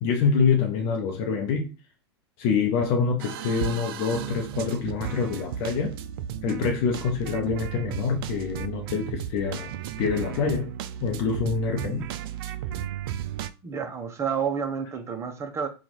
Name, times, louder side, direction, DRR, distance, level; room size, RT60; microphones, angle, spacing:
voice 1, 0.0-1.7 2.4-6.0 6.4-9.7 10.0-10.7 11.0-12.1, left 5 dB, 45° left, 0.7 m, -26 dB
sound 1, 3.2-13.5, right 10 dB, 55° right, 0.4 m, -34 dB
voice 2, 13.6-15.7, right 7 dB, 20° right, 0.7 m, -30 dB
2.9 x 2.4 x 4.0 m
hypercardioid pair, 110°, 14 cm